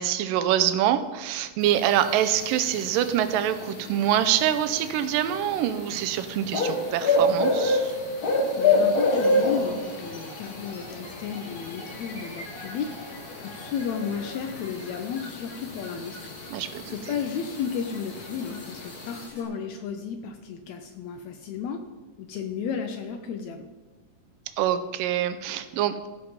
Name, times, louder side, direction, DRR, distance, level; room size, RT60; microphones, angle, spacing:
voice 1, 0.0-8.0 16.5-16.9 24.6-26.1, right 11 dB, 90° right, 11 dB, 2.3 m, -25 dB
sound 1, 1.6-19.3, left 2 dB, 50° left, 1.1 m, -29 dB
voice 2, 8.6-21.8 22.2-23.7, left 7 dB, 85° left, 6 dB, 1.6 m, -33 dB
sound 2, 9.0-19.4, left 2 dB, 35° left, 1.5 m, -46 dB
15.0 x 5.2 x 5.1 m, 1.3 s
omnidirectional pair, 3.9 m